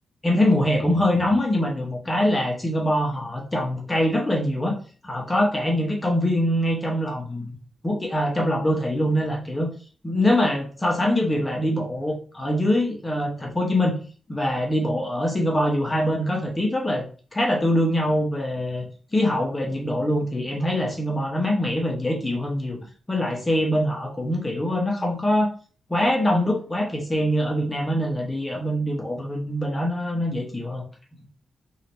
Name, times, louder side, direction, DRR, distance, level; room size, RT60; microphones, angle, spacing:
voice 1, 0.2-7.5 7.8-9.7 10.0-13.9 14.3-17.0 17.3-18.8 19.1-22.8 23.1-25.5 25.9-30.8, left 1 dB, 20° left, -1 dB, 1.0 m, -23 dB
3.1 x 2.8 x 4.3 m, 0.39 s
cardioid pair, 100°, 0 cm